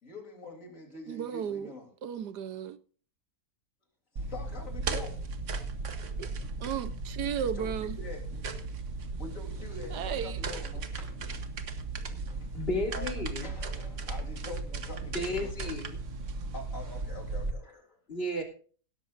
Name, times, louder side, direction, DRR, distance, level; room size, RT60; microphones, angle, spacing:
voice 1, 0.0-1.9 4.1-5.3 7.6-8.4 9.2-10.9 12.3-12.5 12.9-15.7 16.5-18.0, left 2 dB, 55° left, 3.8 m, -45 dB
voice 2, 1.1-1.7 2.0-2.8 6.2-6.3 6.6-8.0 9.9-10.4, right 8 dB, 90° right, 1.5 m, -34 dB
sound 1, 4.2-17.5, right 3 dB, 50° right, 1.5 m, -36 dB
voice 3, 12.5-13.5 15.1-16.0 18.1-18.4, left 1 dB, 35° left, 3.4 m, -33 dB
17.0 x 13.0 x 2.6 m
omnidirectional pair, 1.7 m